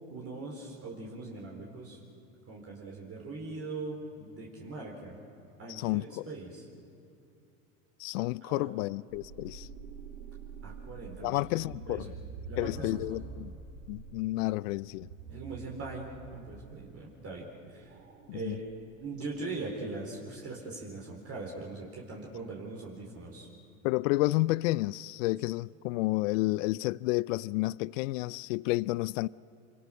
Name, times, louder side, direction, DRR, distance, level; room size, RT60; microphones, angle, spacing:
voice 1, 0.1-2.0 2.5-5.2 5.6-6.6 8.4-8.7 10.6-12.1 12.5-13.2 15.3-17.9 18.3-18.6 19.0-23.5, right 3 dB, 35° right, 4.4 m, -41 dB
voice 2, 5.7-6.3 8.0-9.7 11.2-12.1 12.6-13.6 13.9-15.1 18.3-18.6 23.8-29.3, left 20 dB, 70° left, 0.5 m, -30 dB
sound 1, 9.1-16.9 17.8-19.6, right 4 dB, 80° right, 2.6 m, -46 dB
26.5 x 25.0 x 6.5 m
hypercardioid pair, 90°, 40 cm